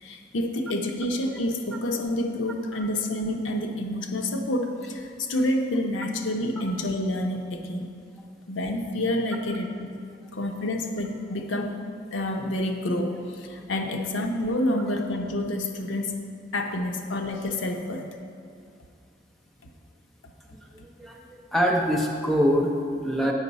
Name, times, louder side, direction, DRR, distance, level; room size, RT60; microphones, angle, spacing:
voice 1, 0.0-7.9 8.5-9.9 10.3-11.8 12.1-16.2 16.5-18.0 19.6-19.7, left 1 dB, 80° left, 3 dB, 0.7 m, -28 dB
voice 2, 20.8-23.3, equal, ahead, -1 dB, 0.6 m, -24 dB
8.2 x 5.4 x 4.1 m, 2.3 s
head